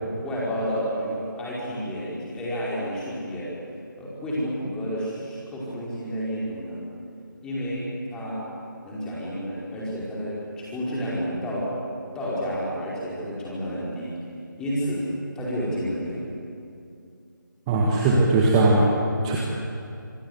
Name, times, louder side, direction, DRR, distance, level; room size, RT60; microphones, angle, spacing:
voice 1, 0.2-3.5 4.0-6.8 7.4-8.4 8.8-11.7 12.1-14.2 14.6-15.0 15.3-16.2, equal, 5° left, -7 dB, 4.9 m, -30 dB
voice 2, 17.7-18.9 19.2-19.4, right 2 dB, 15° right, -2 dB, 1.9 m, -19 dB
26.5 x 19.0 x 8.2 m, 2.5 s
figure-of-eight pair, 155°, 11 cm